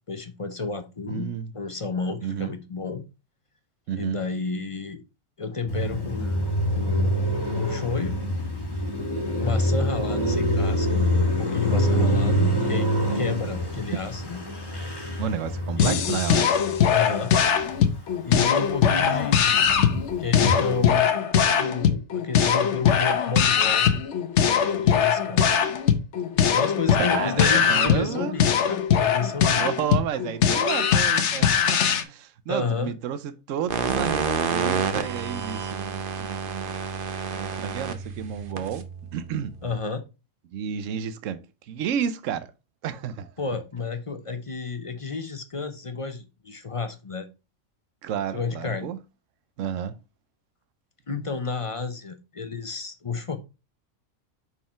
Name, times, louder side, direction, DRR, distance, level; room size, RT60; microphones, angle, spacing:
voice 1, 0.1-3.0 3.9-5.0 5.4-6.4 6.8-7.1 7.6-8.2 9.4-11.1 11.4-14.4 15.8-16.0 16.8-17.3 18.2-19.7 20.2-21.1 21.4-23.9 24.4-25.4 26.3-29.7 32.5-32.9 39.6-40.0 43.4-47.3 48.3-48.9 51.1-53.4, left 4 dB, 35° left, 0.6 m, -31 dB
voice 2, 1.1-1.5 2.2-2.5 3.9-4.2 13.9-14.0 15.2-16.5 19.6-19.7 27.0-28.3 29.6-31.5 32.0-36.7 37.3-38.8 39.1-39.5 40.5-41.4 41.7-42.5 42.8-43.3 48.0-49.0 49.6-50.0, right 8 dB, 80° right, 1.0 m, -31 dB
Car passing by, 5.7-18.1 18.5-21.0, equal, 20° left, 1.5 m, -26 dB
sound 1, 15.8-32.0, left 8 dB, 70° left, 1.0 m, -21 dB
sound 2, 33.7-39.8, right 6 dB, 50° right, 0.9 m, -29 dB
5.6 x 4.8 x 4.3 m
omnidirectional pair, 1.3 m